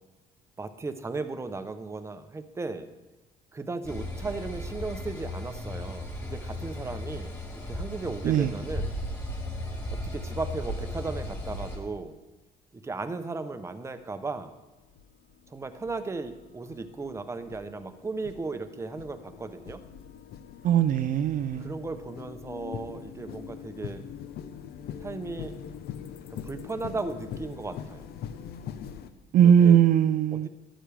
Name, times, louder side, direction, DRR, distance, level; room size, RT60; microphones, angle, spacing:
voice 1, 0.6-2.9 3.5-7.4 7.7-8.9 9.9-12.1 12.7-14.5 15.5-19.8 21.6-24.0 25.0-25.5 26.3-28.1 29.3-29.8 30.3-30.5, right 3 dB, 15° right, 9 dB, 0.8 m, -36 dB
sound 1, 3.8-11.8, left 1 dB, 15° left, 3.3 m, -35 dB
sound 2, 14.0-14.1 14.8-29.1, left 8 dB, 70° left, 0.7 m, -43 dB
voice 2, 20.6-21.7 29.3-30.5, right 9 dB, 50° right, 11 dB, 0.4 m, -20 dB
12.5 x 10.0 x 3.5 m, 1.1 s
cardioid pair, 110°, 17 cm